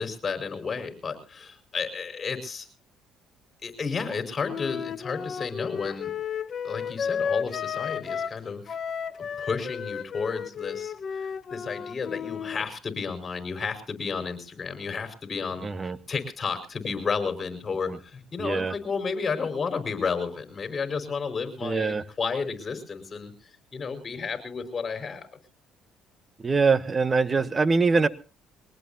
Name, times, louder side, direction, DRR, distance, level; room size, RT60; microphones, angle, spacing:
voice 1, 0.0-2.7 3.6-6.1 6.6-8.8 9.4-25.3, left 5 dB, 35° left, 7 dB, 5.2 m, -32 dB
Wind instrument woodwind instrument, 4.4-8.4 8.7-12.6, left 7 dB, 50° left, 1.1 m, -33 dB
voice 2, 15.6-16.0 17.9-18.0 18.4-18.7 21.6-22.0 26.4-28.1, right 4 dB, 30° right, 15 dB, 1.3 m, -23 dB
23.0 x 19.0 x 2.8 m, 0.35 s
supercardioid pair, 80°, 0 cm